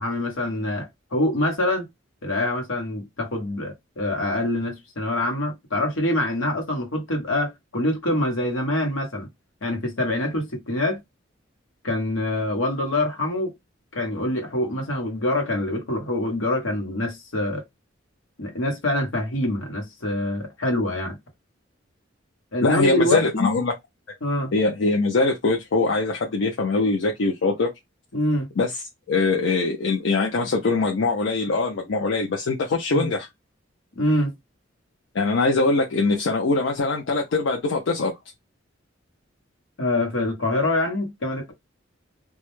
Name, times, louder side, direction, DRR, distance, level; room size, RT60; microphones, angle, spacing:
voice 1, 0.0-1.9 2.2-9.3 9.6-11.0 11.8-13.5 13.9-17.6 18.4-21.2 22.5-23.5 24.2-24.5 28.1-28.5 32.9-33.1 34.0-34.3 39.8-41.5, left 1 dB, 85° left, 1.0 m, -25 dB
voice 2, 22.6-23.7 24.5-27.7 28.6-28.8 29.1-33.3 35.1-38.1, left 3 dB, 70° left, 0.5 m, -22 dB
2.3 x 2.0 x 3.0 m
head